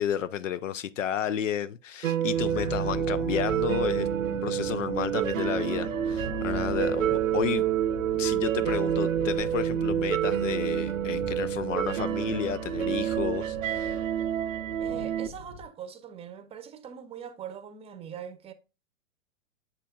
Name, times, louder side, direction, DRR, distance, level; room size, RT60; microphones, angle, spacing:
voice 1, 0.0-7.6 8.1-14.0, left 10 dB, 70° left, 0.6 m, -32 dB
sound 1, 2.0-15.3, right 10 dB, 80° right, 0.6 m, -28 dB
sound 2, 2.3-14.8, equal, 15° left, 2.2 m, -42 dB
Thunder, 5.9-15.7, left 2 dB, 50° left, 4.5 m, -43 dB
voice 2, 14.8-18.5, right 8 dB, 15° right, 0.7 m, -42 dB
7.4 x 6.7 x 2.3 m
hypercardioid pair, 115°, 39 cm